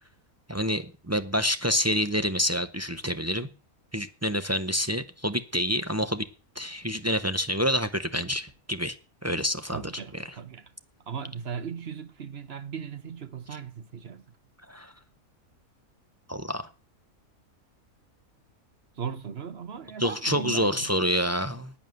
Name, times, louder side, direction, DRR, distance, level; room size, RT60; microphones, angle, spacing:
voice 1, 0.5-3.5 3.9-6.3 6.6-9.0 9.2-9.8 10.1-10.2 14.7-14.9 16.3-16.6 20.0-21.7, equal, 20° right, 0.5 m, -27 dB
voice 2, 9.7-10.7 11.1-14.4 19.0-20.9, right 6 dB, 45° right, 1.1 m, -38 dB
10.5 x 9.3 x 7.8 m
omnidirectional pair, 1.6 m